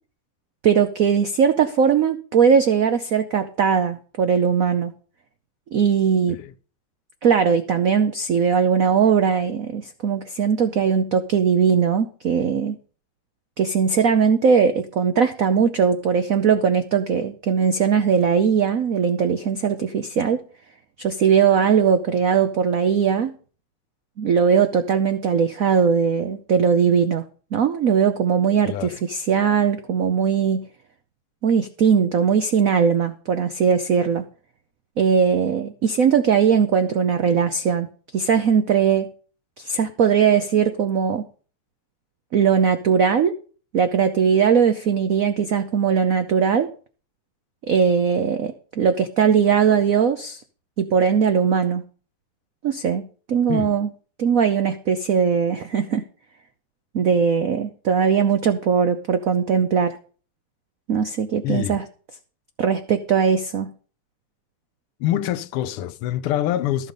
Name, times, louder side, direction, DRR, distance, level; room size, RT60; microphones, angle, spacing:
voice 1, 0.6-4.9 5.7-6.4 7.2-12.8 13.6-20.4 21.0-23.3 24.2-27.2 27.5-30.6 31.4-34.2 35.0-37.9 38.1-39.1 39.6-41.2 42.3-43.3 43.7-46.7 47.7-50.4 50.8-51.8 52.6-53.9 54.2-56.0 56.9-60.0 60.9-61.8 62.6-63.7, right 6 dB, 80° right, 0.7 m, -19 dB
voice 2, 28.7-29.0 53.5-53.7 61.4-61.8 65.0-66.9, left 12 dB, 90° left, 1.7 m, -25 dB
13.5 x 7.1 x 5.3 m
omnidirectional pair, 2.4 m